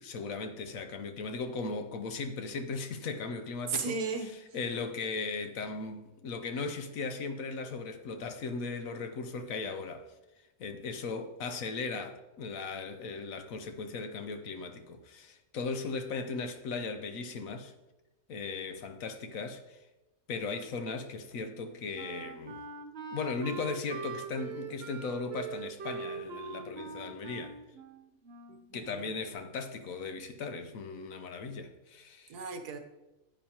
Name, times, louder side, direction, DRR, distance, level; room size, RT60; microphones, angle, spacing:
voice 1, 0.0-4.0 4.5-10.1 10.6-17.7 18.3-19.8 20.3-22.6 23.1-27.6 28.7-32.3, left 4 dB, 65° left, 1.1 m, -37 dB
voice 2, 3.7-4.3 28.5-29.1 32.3-32.8, right 4 dB, 85° right, 1.5 m, -35 dB
Wind instrument woodwind instrument, 21.5-28.8, right 6 dB, 55° right, 0.8 m, -43 dB
10.0 x 9.0 x 2.9 m
omnidirectional pair, 1.6 m